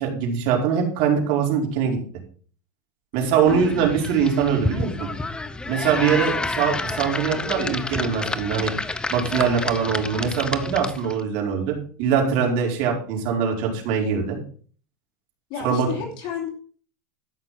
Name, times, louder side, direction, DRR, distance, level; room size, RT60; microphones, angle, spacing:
voice 1, 0.0-2.0 3.1-5.1 5.7-8.7 9.1-14.4 15.6-15.9, right 7 dB, 55° right, 0 dB, 4.7 m, -22 dB
voice 2, 3.2-3.9 6.0-6.2 15.5-16.5, left 6 dB, 50° left, 1 dB, 2.8 m, -32 dB
sound 1, 3.5-11.2, left 3 dB, 10° left, 0.7 m, -29 dB
13.5 x 6.2 x 5.7 m, 0.43 s
supercardioid pair, 145°, 10 cm